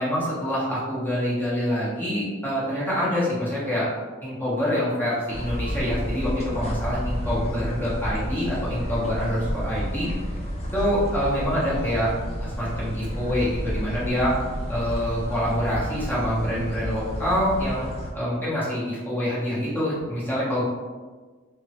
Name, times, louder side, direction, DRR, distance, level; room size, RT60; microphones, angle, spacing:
voice 1, 0.0-3.9 4.2-10.1 10.7-12.1 12.4-14.3 14.7-17.9 18.1-20.6, equal, 10° left, -9 dB, 0.9 m, -26 dB
sound 1, 5.3-18.1, equal, 30° left, 0.5 m, -31 dB
3.3 x 2.1 x 2.9 m, 1.4 s
head